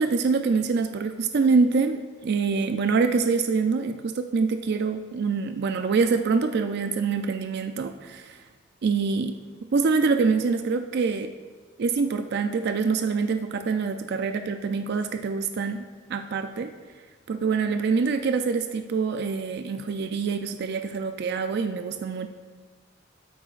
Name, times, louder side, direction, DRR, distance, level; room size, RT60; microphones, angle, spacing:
voice 1, 0.0-8.4 8.8-9.4 9.7-11.3 11.8-16.7 17.3-22.3, right 4 dB, 55° right, 7 dB, 0.4 m, -25 dB
13.0 x 8.5 x 2.5 m, 1.5 s
head